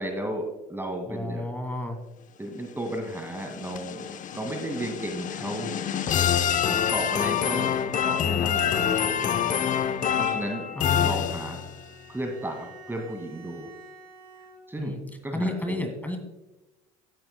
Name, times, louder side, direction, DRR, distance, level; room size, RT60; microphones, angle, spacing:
voice 1, 0.0-1.4 2.4-5.7 6.6-9.5 9.8-10.6 11.0-11.6 12.1-13.7 14.7-15.9, right 1 dB, 10° right, 4 dB, 2.1 m, -34 dB
voice 2, 1.1-2.0 10.8-11.1 14.8-15.0 15.3-16.2, left 1 dB, 10° left, 4 dB, 2.1 m, -31 dB
sound 1, 2.9-11.8, left 9 dB, 45° left, 0.8 m, -26 dB
Bowed string instrument, 10.5-14.9, right 3 dB, 85° right, 3.5 m, -50 dB
16.5 x 8.9 x 2.2 m, 1.0 s
supercardioid pair, 85°, 19 cm